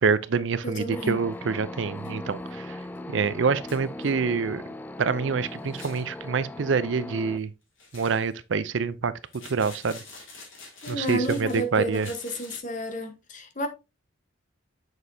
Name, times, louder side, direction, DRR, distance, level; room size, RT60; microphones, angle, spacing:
voice 1, 0.0-2.8 3.1-4.6 5.0-7.5 7.9-9.1 9.5-10.0 10.9-12.1, right 5 dB, 70° right, 0.5 m, -26 dB
voice 2, 0.6-1.2 10.8-13.7, equal, 40° left, 1.1 m, -31 dB
sound 1, 0.9-7.4, left 1 dB, 10° left, 0.3 m, -39 dB
sound 2, 1.3-1.4 2.0-2.1 2.5-2.6 3.0-3.1 3.7-4.1 5.6-6.1 7.8-8.3 9.3-11.7 11.9-12.6, left 3 dB, 85° left, 3.4 m, -46 dB
7.4 x 6.2 x 2.7 m
head